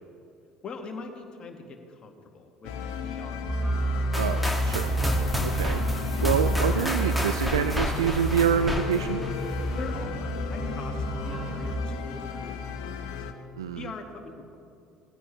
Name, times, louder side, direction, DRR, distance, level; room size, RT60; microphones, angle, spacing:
voice 1, 0.6-2.7 3.0-3.4 9.8-13.2 13.7-14.6, left 4 dB, 40° left, 3 dB, 2.1 m, -42 dB
sound 1, 2.6-13.3, left 6 dB, 65° left, 1.1 m, -35 dB
sound 2, 3.5-11.8, right 1 dB, 20° right, 2.0 m, -30 dB
sound 3, 4.1-10.0, equal, ahead, 2.3 m, -32 dB
voice 2, 4.2-4.9 5.4-9.2 13.5-13.9, right 7 dB, 80° right, 9 dB, 0.5 m, -27 dB
20.5 x 15.5 x 3.3 m, 2.5 s
figure-of-eight pair, 60°, 2 cm